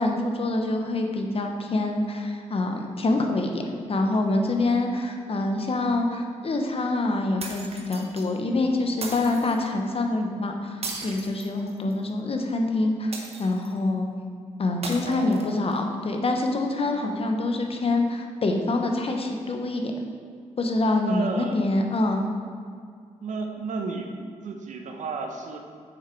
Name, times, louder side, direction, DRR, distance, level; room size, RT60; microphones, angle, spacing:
voice 1, 0.0-13.1 13.4-14.1 14.6-19.9 20.6-22.2, left 2 dB, 50° left, 3 dB, 1.1 m, -26 dB
sound 1, 7.4-8.3 9.0-9.6 10.8-12.0 13.1-13.8 14.8-15.8, right 3 dB, 50° right, 1.2 m, -37 dB
voice 2, 15.0-15.6 21.0-21.6 23.2-24.1 24.4-25.6, right 4 dB, 75° right, 3 dB, 0.9 m, -32 dB
7.0 x 6.1 x 4.6 m, 2.1 s
cardioid pair, 55°, 13 cm